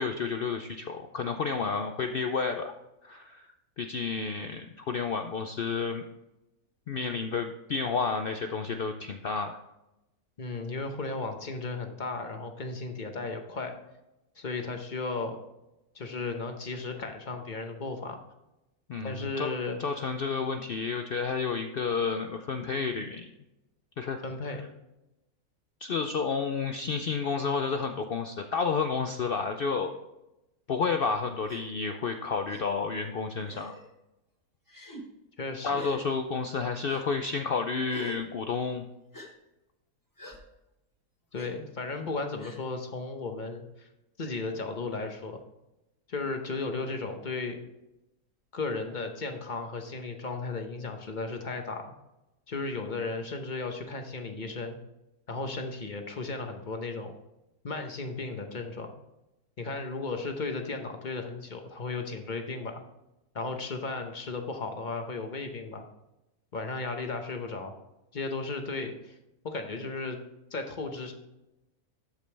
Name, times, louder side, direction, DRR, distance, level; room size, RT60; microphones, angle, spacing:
voice 1, 0.0-2.7 3.0-3.5 3.8-6.0 6.9-9.6 18.9-19.5 19.8-23.3 24.0-24.2 25.8-29.9 30.7-33.7 35.6-38.8, left 5 dB, 85° left, 6 dB, 0.5 m, -30 dB
voice 2, 10.4-13.8 14.4-15.4 15.9-18.2 19.0-19.8 24.2-24.6 35.4-35.8 41.3-43.9 44.2-45.4 46.1-47.6 48.5-51.8 52.5-54.8 55.3-57.1 57.6-58.9 59.6-62.8 63.3-65.8 66.5-67.7 68.1-69.1 69.4-70.2 70.5-71.1, left 3 dB, 40° left, 5 dB, 0.9 m, -35 dB
Gasp, 31.4-31.6 32.5-32.6 33.5-33.9 34.7-35.0 35.7-36.0 36.8-37.0 37.9-38.2 39.1-39.3 40.2-40.4 41.4-41.5 42.4-42.6, left 1 dB, 15° left, 1.2 m, -44 dB
13.0 x 5.2 x 3.3 m, 0.94 s
omnidirectional pair, 1.6 m